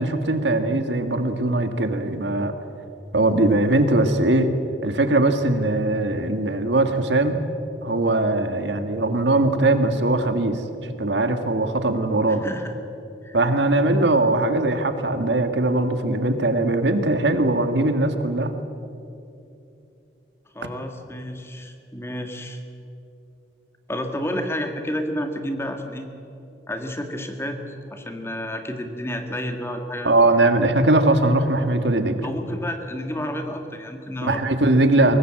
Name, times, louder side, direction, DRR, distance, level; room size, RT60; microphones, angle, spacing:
voice 1, 0.0-2.5 3.1-4.5 4.8-7.4 7.8-12.5 13.3-18.5 30.0-32.2 34.2-35.2, right 2 dB, 75° right, 7 dB, 1.7 m, -20 dB
voice 2, 12.3-12.7 13.2-13.4 20.5-22.6 23.9-26.1 26.7-27.6 27.9-30.1 32.2-34.4, equal, 15° left, 5 dB, 1.8 m, -30 dB
23.5 x 19.0 x 7.7 m, 2.7 s
head